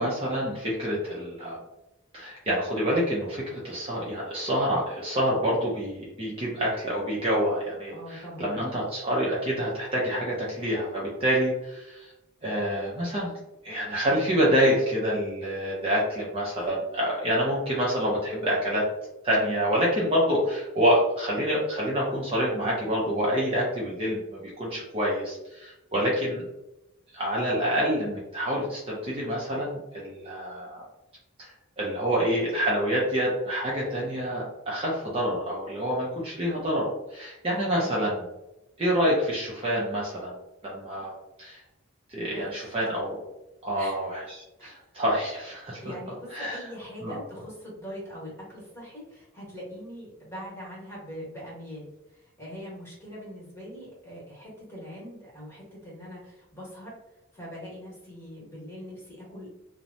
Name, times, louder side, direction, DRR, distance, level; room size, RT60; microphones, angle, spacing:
voice 1, 0.0-1.6 2.1-12.1 12.4-13.3 13.6-18.8 19.2-26.4 27.1-30.9 31.4-31.5 31.8-38.2 38.8-40.4 40.6-41.1 41.4-41.6 42.1-43.2 43.6-45.9 46.3-46.6 47.0-47.1, equal, 30° right, -5 dB, 0.5 m, -27 dB
voice 2, 7.9-8.6 37.6-38.0 42.3-42.7 43.8-44.0 44.6-44.7 45.8-56.9 57.3-59.5, equal, 15° left, -6 dB, 1.2 m, -42 dB
3.0 x 2.0 x 2.6 m, 0.93 s
head